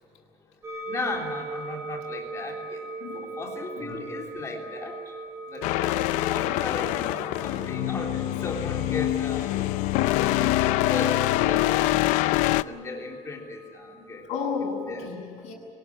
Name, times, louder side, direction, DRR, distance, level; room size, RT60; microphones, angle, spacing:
voice 1, 0.2-5.1 5.5-9.7 10.0-11.2 11.4-14.3 14.9-15.1, left 3 dB, 25° left, 1 dB, 3.4 m, -37 dB
sound 1, 0.6-14.9, right 3 dB, 20° right, 7.3 m, -40 dB
voice 2, 3.0-3.4 3.8-4.1 10.5-10.8 14.2-15.5, left 5 dB, 65° left, -3 dB, 7.8 m, -33 dB
sound 2, 5.6-12.6, left 16 dB, 85° left, 0.6 m, -25 dB
24.0 x 19.0 x 8.8 m, 2.2 s
cardioid pair, 175°, 12 cm